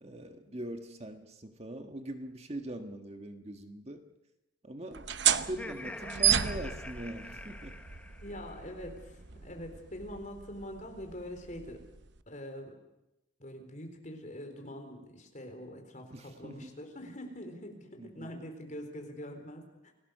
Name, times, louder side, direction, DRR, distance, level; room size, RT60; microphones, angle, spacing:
voice 1, 0.0-4.0 4.6-5.1 5.4-7.8 16.1-16.7 18.0-18.3, right 1 dB, 35° right, 5 dB, 1.6 m, -42 dB
sound 1, 4.9-12.2, right 10 dB, 65° right, 0.9 m, -33 dB
Laughter, 5.4-8.6, left 1 dB, 5° left, 1.1 m, -45 dB
voice 2, 8.2-11.8 12.3-12.7 13.4-19.9, equal, 40° left, 4 dB, 4.2 m, -44 dB
29.0 x 18.5 x 6.6 m, 0.91 s
head